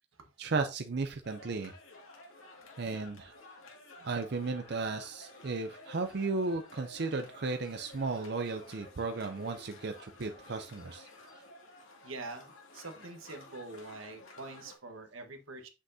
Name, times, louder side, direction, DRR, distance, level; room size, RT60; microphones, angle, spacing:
voice 1, 0.4-1.7 2.8-3.3 4.0-11.1, right 3 dB, 55° right, 0.5 m, -35 dB
sound 1, 1.2-14.8, left 2 dB, 80° left, 2.1 m, -53 dB
voice 2, 12.0-15.7, right 3 dB, 85° right, 1.3 m, -45 dB
7.8 x 6.2 x 2.7 m
head